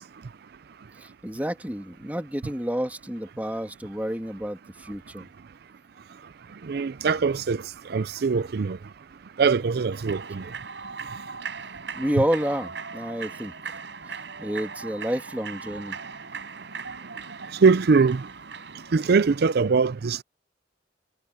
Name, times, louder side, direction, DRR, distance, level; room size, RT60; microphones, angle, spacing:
voice 1, 1.0-5.3 12.0-13.5 14.1-16.0, equal, 10° right, 2.7 m, -30 dB
voice 2, 6.6-7.6 7.9-8.8 9.4-10.4 17.6-18.3 18.9-20.2, right 5 dB, 60° right, 0.5 m, -22 dB
Human voice / Clapping / Cheering, 9.9-19.6, right 5 dB, 75° right, 5.0 m, -39 dB
head